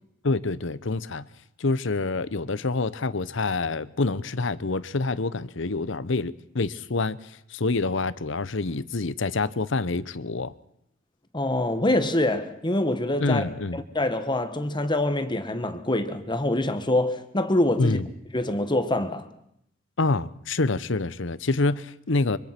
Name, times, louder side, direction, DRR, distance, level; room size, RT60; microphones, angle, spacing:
voice 1, 0.2-1.3 1.6-10.5 13.2-13.8 17.8-18.1 20.0-22.4, left 3 dB, 70° left, 1.0 m, -27 dB
voice 2, 11.3-13.4 13.7-18.0 18.3-19.3, left 1 dB, 25° left, 1.5 m, -25 dB
25.0 x 24.5 x 6.0 m
head